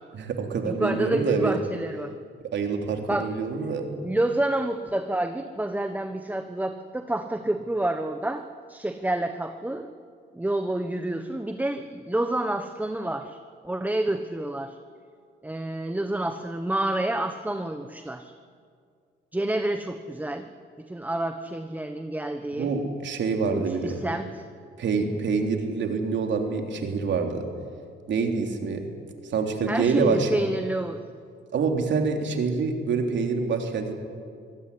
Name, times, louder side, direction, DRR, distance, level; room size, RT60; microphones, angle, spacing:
voice 1, 0.1-1.5 2.5-3.9 22.6-24.1 24.8-27.5 28.1-28.8 29.3-30.4 31.5-33.9, right 4 dB, 65° right, 3 dB, 3.5 m, -26 dB
voice 2, 0.6-2.1 3.1-3.3 3.9-9.9 10.3-13.4 13.6-14.8 15.4-18.3 19.3-20.5 20.8-22.7 23.5-24.4 29.7-31.0, right 1 dB, 10° right, 8 dB, 1.2 m, -29 dB
25.0 x 16.5 x 10.0 m, 2.2 s
cardioid pair, 90°, 20 cm